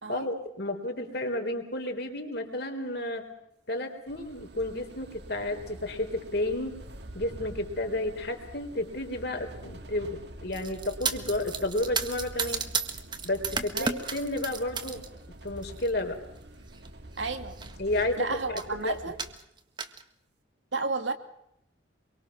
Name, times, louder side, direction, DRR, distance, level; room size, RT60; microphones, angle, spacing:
voice 1, 0.1-3.3 3.7-6.8 7.1-12.6 13.2-15.1 15.4-16.2 17.8-19.0, left 1 dB, 55° left, 4 dB, 4.0 m, -32 dB
sound 1, 4.1-19.4, right 1 dB, 55° right, 2.0 m, -46 dB
sound 2, 10.5-15.1 15.5-15.9 16.7-16.9 17.2-17.3 17.5-18.1 18.6-18.7 19.2-20.0, right 5 dB, 25° right, 1.5 m, -33 dB
voice 2, 13.5-13.9 17.2-17.6 18.2-19.2 20.7-21.1, right 3 dB, 75° right, 6 dB, 2.6 m, -32 dB
25.5 x 23.5 x 6.2 m, 0.77 s
head